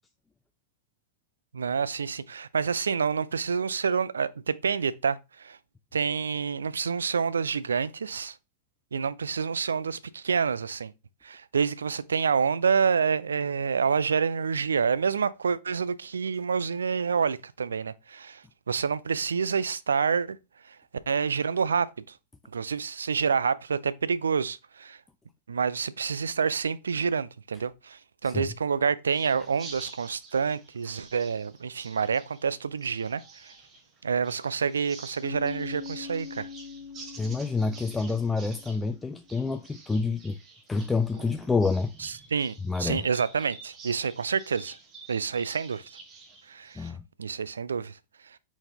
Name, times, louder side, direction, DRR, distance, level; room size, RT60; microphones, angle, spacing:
voice 1, 1.5-5.6 5.9-8.4 8.9-10.9 11.2-20.4 20.7-20.8 21.1-21.9 22.5-25.0 25.5-33.5 34.0-36.5 42.0-42.5 42.8-44.8 45.1-45.8 46.5-46.9 47.2-48.0, right 6 dB, 70° right, 0.3 m, -28 dB
sound 1, 29.1-46.9, right 4 dB, 30° right, 1.0 m, -49 dB
Bass guitar, 35.2-39.0, left 6 dB, 85° left, 1.3 m, -42 dB
voice 2, 37.2-40.4 40.7-41.9 42.6-43.1 46.8-47.0, left 4 dB, 10° left, 0.3 m, -28 dB
4.0 x 4.0 x 2.8 m
figure-of-eight pair, 90°, 0 cm